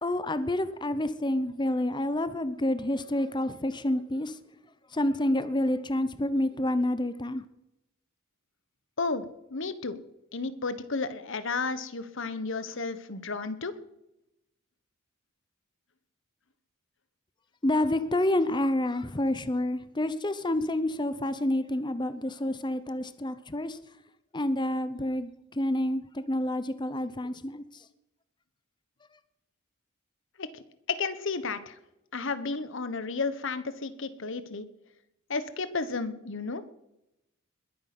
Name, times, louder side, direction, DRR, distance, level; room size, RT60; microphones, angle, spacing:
voice 1, 0.0-4.4 4.9-7.4 17.6-23.8 24.3-27.8, left 1 dB, 20° left, 0.8 m, -28 dB
voice 2, 9.0-10.0 10.3-13.7 30.4-30.5 30.9-31.7 32.1-34.7 35.3-36.6, left 4 dB, 60° left, 1.2 m, -32 dB
21.0 x 9.0 x 6.1 m
head